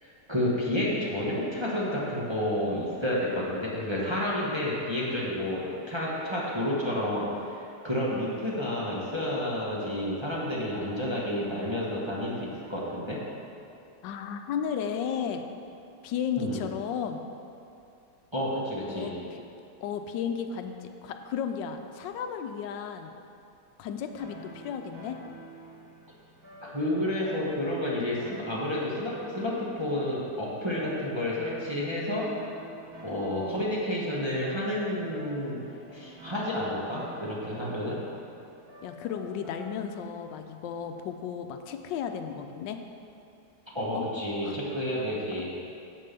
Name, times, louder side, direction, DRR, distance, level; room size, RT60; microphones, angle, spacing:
voice 1, 0.0-13.2 16.4-16.6 18.3-19.1 26.6-32.3 33.0-35.6 35.9-38.0 43.7-45.5, left 1 dB, 15° right, -7 dB, 1.2 m, -30 dB
voice 2, 14.0-15.4 16.0-17.2 18.8-19.4 19.8-23.1 23.8-25.2 33.4-33.7 38.8-42.8 43.9-44.1 44.4-44.6, left 7 dB, 85° left, 6 dB, 1.3 m, -34 dB
sound 1, 24.2-40.1, right 1 dB, 60° right, 2.2 m, -49 dB
7.5 x 5.5 x 6.7 m, 2.7 s
omnidirectional pair, 1.9 m